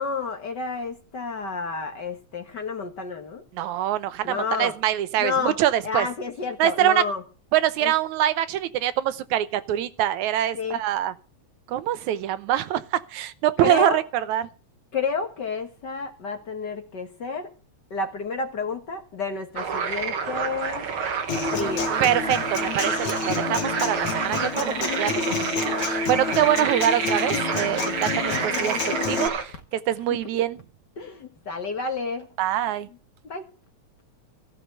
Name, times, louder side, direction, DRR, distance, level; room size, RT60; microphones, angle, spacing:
voice 1, 0.0-3.4 4.2-4.7 5.2-5.6 5.8-7.2 7.8-7.9 10.5-10.8 13.6-14.0 14.9-17.5 17.9-20.9 21.5-22.0 31.0-32.3 33.2-33.5, left 4 dB, 45° left, 1.7 m, -30 dB
voice 2, 3.5-6.1 6.6-7.0 7.5-11.1 11.7-12.8 13.1-14.5 22.0-29.5 29.9-30.6 32.4-32.9, right 12 dB, 80° right, 2.2 m, -24 dB
sound 1, 19.6-29.4, right 5 dB, 50° right, 2.4 m, -29 dB
Human voice / Acoustic guitar, 21.3-29.3, left 6 dB, 75° left, 3.2 m, -29 dB
16.0 x 6.2 x 7.9 m
omnidirectional pair, 3.3 m